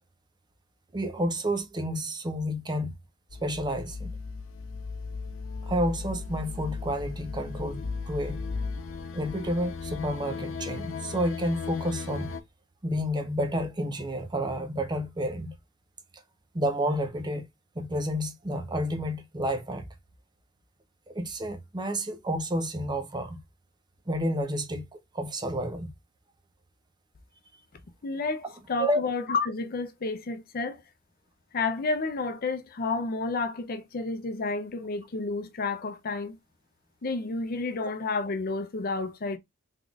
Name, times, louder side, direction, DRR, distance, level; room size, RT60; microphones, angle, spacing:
voice 1, 0.9-2.9 3.4-4.1 5.6-8.4 9.1-12.3 12.8-15.5 16.5-17.4 17.8-19.9 21.1-23.4 24.1-24.8 25.1-25.9 28.8-29.0, equal, 20° right, 0.6 m, -30 dB
sound 1, 3.3-12.4, left 4 dB, 80° left, 0.7 m, -36 dB
voice 2, 28.0-30.8 31.5-36.4 37.0-39.4, left 3 dB, 50° left, 0.5 m, -30 dB
3.7 x 3.5 x 2.3 m
head